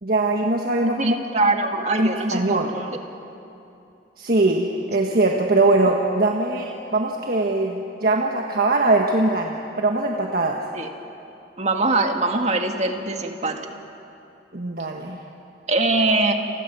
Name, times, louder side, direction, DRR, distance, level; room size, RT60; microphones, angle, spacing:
voice 1, 0.0-1.2 2.0-2.7 4.2-10.6 14.5-15.2, right 2 dB, 55° right, 1 dB, 1.5 m, -21 dB
voice 2, 1.0-3.0 10.7-10.9 11.6-13.6 15.7-16.3, right 2 dB, 40° right, 4 dB, 2.0 m, -22 dB
29.5 x 24.5 x 7.0 m, 2.8 s
head